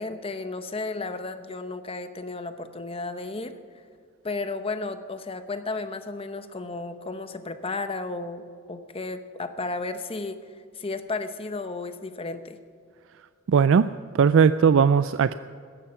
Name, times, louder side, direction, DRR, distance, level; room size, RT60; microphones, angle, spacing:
voice 1, 0.0-3.5 4.2-10.4 10.7-12.6, left 3 dB, 30° left, 10 dB, 0.8 m, -33 dB
voice 2, 13.5-13.9 14.2-15.3, right 6 dB, 65° right, 14 dB, 0.4 m, -18 dB
16.5 x 13.0 x 5.8 m, 2.2 s
head